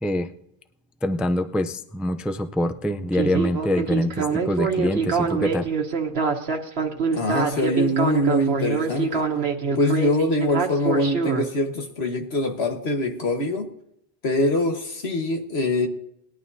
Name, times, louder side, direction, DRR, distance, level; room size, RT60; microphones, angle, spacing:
voice 1, 1.0-5.7, left 1 dB, ahead, 0.4 m, -25 dB
Speech synthesizer, 3.1-11.5, right 5 dB, 75° right, 1.5 m, -25 dB
voice 2, 7.1-9.3 9.7-13.7 14.2-15.9, left 1 dB, 80° left, 1.7 m, -23 dB
19.5 x 11.0 x 2.8 m
omnidirectional pair, 1.1 m